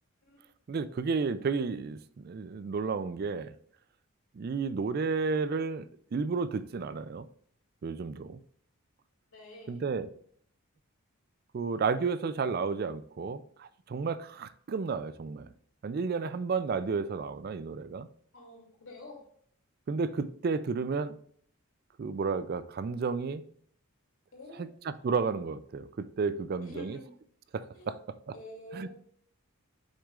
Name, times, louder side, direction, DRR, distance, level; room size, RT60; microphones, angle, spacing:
voice 1, 0.7-3.5 4.3-5.8 6.1-7.3 7.8-8.4 9.7-10.1 11.5-15.5 15.8-18.1 19.9-21.2 22.0-23.4 24.9-27.0 27.5-27.9 28.7-28.9, right 4 dB, 45° right, 0.3 m, -32 dB
voice 2, 9.3-9.8 18.3-19.2 24.3-24.7 26.6-27.1 27.7-27.9 28.3-28.9, left 1 dB, 65° left, 3.2 m, -47 dB
8.2 x 6.2 x 2.4 m
head